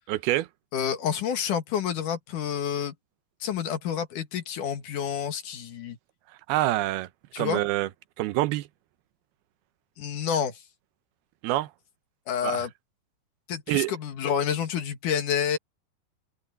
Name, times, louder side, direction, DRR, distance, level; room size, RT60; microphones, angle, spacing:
voice 1, 0.1-0.5 6.5-7.1 7.4-7.9 8.2-8.7 11.4-11.7 12.4-12.6 13.7-13.9, right 16 dB, 90° right, 2.8 m, -26 dB
voice 2, 0.7-2.9 3.4-6.0 7.3-7.6 10.0-10.6 12.3-12.7 13.5-15.6, left 8 dB, 60° left, 3.0 m, -29 dB
omnidirectional pair, 4.3 m